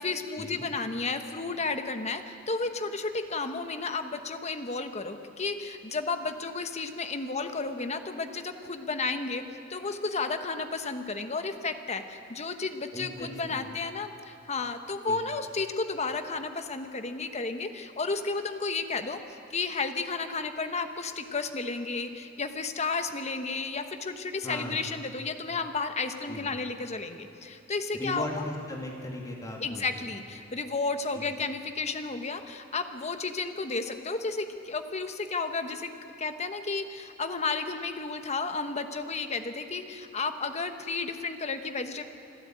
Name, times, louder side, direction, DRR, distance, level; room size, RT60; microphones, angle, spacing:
voice 1, 0.0-9.4 9.7-19.2 19.5-28.5 29.6-35.9 36.2-42.0, left 4 dB, 35° left, 8 dB, 1.1 m, -32 dB
voice 2, 12.9-13.7 15.1-15.2 24.4-24.9 26.3-26.5 27.9-30.1 31.1-31.3, left 1 dB, 15° left, -1 dB, 2.3 m, -38 dB
25.5 x 12.5 x 8.8 m, 2.8 s
head